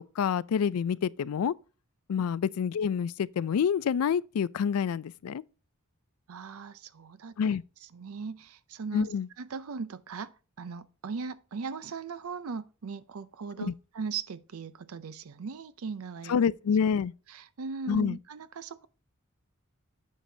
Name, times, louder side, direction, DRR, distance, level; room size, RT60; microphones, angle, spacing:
voice 1, 0.0-1.5 2.1-5.4 7.4-7.6 8.9-9.3 13.6-13.7 16.3-17.1 17.9-18.2, left 7 dB, 80° left, 0.4 m, -27 dB
voice 2, 6.3-7.6 7.9-9.1 9.4-10.3 10.6-16.4 17.3-18.9, right 5 dB, 75° right, 0.5 m, -39 dB
9.2 x 6.5 x 2.7 m
head